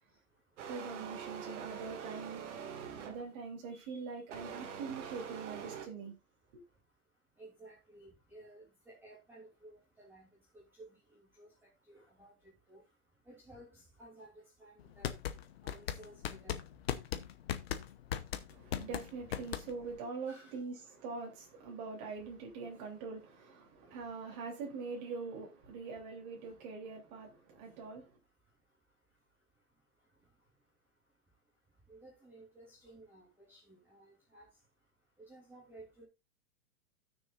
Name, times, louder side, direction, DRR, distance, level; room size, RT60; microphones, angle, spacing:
voice 1, 0.0-0.7 4.3-4.4 6.4-18.9 19.4-19.6 20.2-20.8 22.7-22.8 23.6-24.4 25.8-26.1 26.4-36.0, right 1 dB, 5° right, 3.0 m, -59 dB
sound 1, 0.6-3.4 4.3-5.9, right 7 dB, 55° right, 2.3 m, -44 dB
voice 2, 0.7-2.4 3.0-6.1 6.5-6.6 18.5-28.2, right 4 dB, 30° right, 3.3 m, -43 dB
sound 2, 14.8-20.0, left 10 dB, 45° left, 0.9 m, -38 dB
16.5 x 6.5 x 2.5 m
hypercardioid pair, 175°, 44 cm